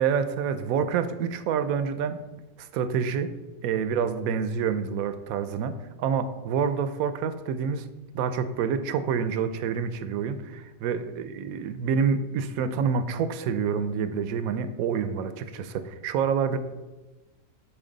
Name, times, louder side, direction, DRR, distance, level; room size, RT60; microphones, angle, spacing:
voice 1, 0.0-2.2 2.6-3.3 3.6-5.7 6.0-7.9 8.1-16.6, right 6 dB, 85° right, 11 dB, 1.0 m, -27 dB
9.2 x 4.2 x 3.9 m, 1.1 s
omnidirectional pair, 1.4 m